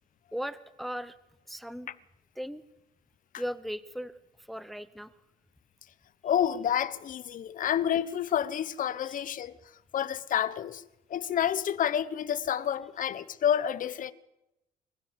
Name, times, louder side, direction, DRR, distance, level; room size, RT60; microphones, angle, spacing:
voice 1, 0.3-1.2 1.5-1.9 2.4-2.6 3.4-4.2 4.5-5.1 9.0-9.3, equal, ahead, 0.9 m, -37 dB
voice 2, 6.2-9.5 9.9-10.8 11.1-14.1, left 9 dB, 50° left, 1.2 m, -29 dB
25.5 x 15.5 x 8.1 m
cardioid pair, 110°, 17 cm